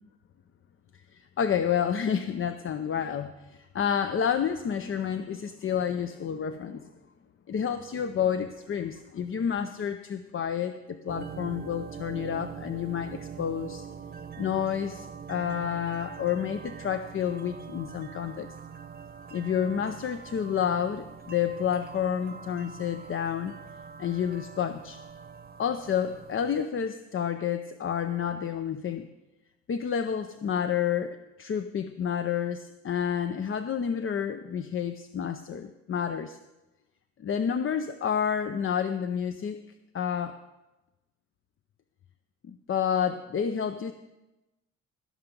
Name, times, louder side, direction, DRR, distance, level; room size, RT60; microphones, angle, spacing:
voice 1, 1.1-6.9 7.5-13.8 14.4-18.5 19.3-23.5 24.0-25.0 25.6-29.1 29.7-36.4 37.2-39.6 39.9-40.4 42.5-43.9, left 8 dB, 45° left, 9 dB, 0.6 m, -29 dB
sound 1, 11.1-26.7, right 7 dB, 30° right, 0.9 m, -43 dB
15.0 x 6.0 x 6.9 m, 1.0 s
cardioid pair, 90°, 30 cm